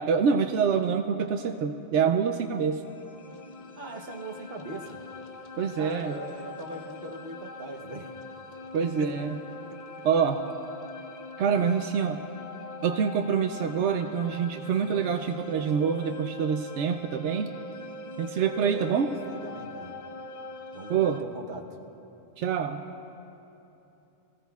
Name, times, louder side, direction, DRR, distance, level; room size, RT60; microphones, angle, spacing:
voice 1, 0.0-2.8 5.6-6.1 8.7-9.4 10.0-10.5 11.4-12.2 12.8-17.5 18.2-19.1 20.9-21.2 22.4-22.8, right 6 dB, 85° right, 6 dB, 0.9 m, -26 dB
sound 1, 2.8-21.2, left 2 dB, 50° left, 0.7 m, -42 dB
voice 2, 3.8-5.0 5.8-8.1 9.0-9.1 18.5-19.9 20.7-21.8, right 2 dB, 60° right, 2 dB, 1.1 m, -40 dB
24.5 x 15.5 x 2.4 m, 2.9 s
omnidirectional pair, 1.1 m